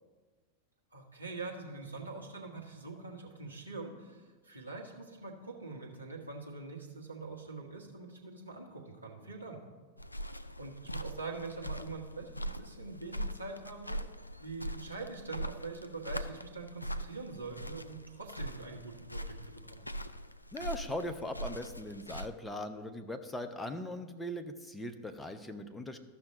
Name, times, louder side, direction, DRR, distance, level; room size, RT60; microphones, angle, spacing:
voice 1, 0.9-9.6 10.6-14.0 14.4-19.9, right 3 dB, 80° right, -2 dB, 1.4 m, -44 dB
sound 1, 10.0-22.3, equal, 85° left, 0.3 m, -41 dB
voice 2, 20.5-26.0, left 1 dB, 5° left, 6 dB, 0.7 m, -40 dB
13.5 x 5.8 x 3.9 m, 1.4 s
figure-of-eight pair, 90°, 0 cm